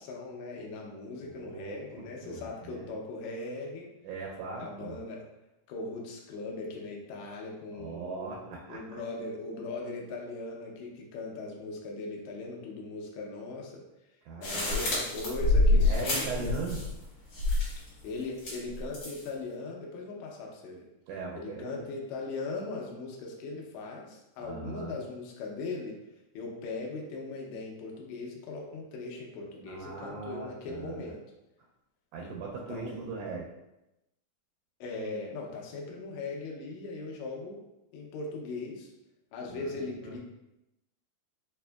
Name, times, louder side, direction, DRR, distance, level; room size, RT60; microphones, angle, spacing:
voice 1, 0.0-3.9 4.6-5.2 5.7-13.8 14.4-16.6 17.8-20.9 21.3-26.0 26.3-31.2 32.2-32.3 32.7-33.0 34.8-37.6 37.9-38.9 39.3-40.2, left 3 dB, 75° left, -1 dB, 1.8 m, -39 dB
voice 2, 1.3-2.9 4.0-5.0 7.7-9.0 14.3-15.0 15.7-16.8 21.1-21.8 24.4-25.0 29.7-31.1 32.1-33.5 39.5-40.2, right 4 dB, 80° right, -2 dB, 1.9 m, -40 dB
sound 1, 14.4-17.0 17.3-17.9 18.4-19.3, left 2 dB, 60° left, 2.2 m, -27 dB
4.9 x 2.6 x 2.2 m, 0.93 s
omnidirectional pair, 3.6 m